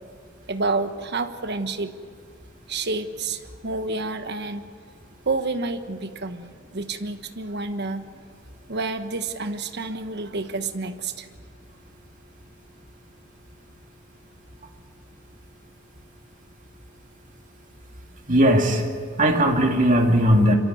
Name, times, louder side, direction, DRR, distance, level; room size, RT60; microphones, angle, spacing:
voice 1, 0.5-1.9 2.7-4.7 5.3-8.0 8.7-11.3, right 3 dB, 60° right, 9 dB, 1.3 m, -29 dB
voice 2, 18.3-18.8 19.2-20.5, equal, 40° right, 1 dB, 2.5 m, -18 dB
26.5 x 13.5 x 9.4 m, 2.2 s
head